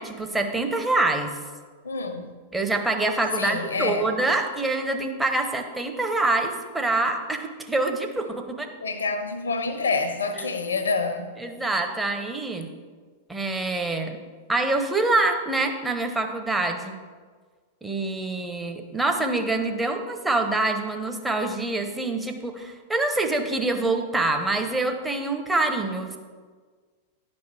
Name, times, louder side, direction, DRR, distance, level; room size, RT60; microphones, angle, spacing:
voice 1, 0.0-1.4 2.5-8.7 10.4-10.5 11.4-12.7 13.3-14.2 14.5-16.9 17.8-26.2, right 2 dB, 5° right, 1.1 m, -25 dB
voice 2, 1.8-2.3 3.4-4.1 8.8-11.4, left 4 dB, 70° left, 1.1 m, -27 dB
11.0 x 5.3 x 6.1 m
figure-of-eight pair, 95°, 0 cm